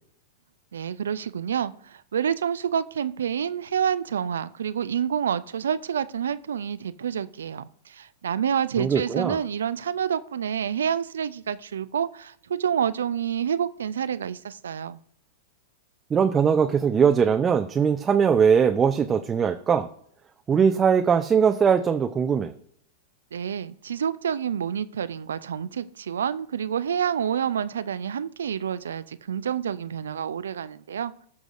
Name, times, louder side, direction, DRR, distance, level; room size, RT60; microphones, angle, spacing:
voice 1, 0.7-15.0 23.3-31.1, right 8 dB, 75° right, 15 dB, 0.4 m, -28 dB
voice 2, 8.8-9.4 16.1-19.9 20.5-22.5, right 7 dB, 20° right, 6 dB, 0.6 m, -21 dB
18.5 x 6.2 x 2.5 m, 0.63 s
figure-of-eight pair, 100°, 0 cm